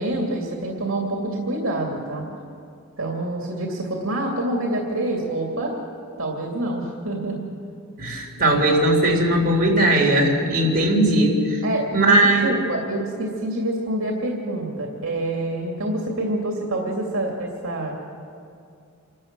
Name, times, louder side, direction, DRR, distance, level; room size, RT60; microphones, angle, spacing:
voice 1, 0.0-2.2 3.0-5.7 6.2-7.5 11.6-18.0, right 1 dB, 70° right, 0 dB, 2.6 m, -26 dB
voice 2, 8.0-11.6 11.9-12.5, right 1 dB, 45° right, -1 dB, 3.7 m, -18 dB
27.5 x 13.0 x 7.5 m, 2.4 s
head